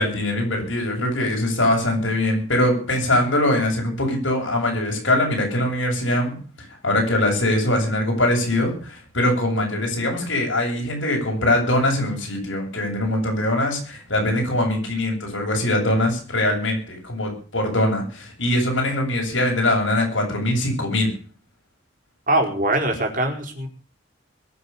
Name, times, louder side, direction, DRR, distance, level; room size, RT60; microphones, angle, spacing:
voice 1, 0.0-21.1, left 1 dB, 70° left, 1 dB, 7.9 m, -22 dB
voice 2, 22.3-23.7, right 1 dB, 40° right, 2 dB, 4.7 m, -22 dB
22.0 x 7.7 x 7.2 m, 0.41 s
head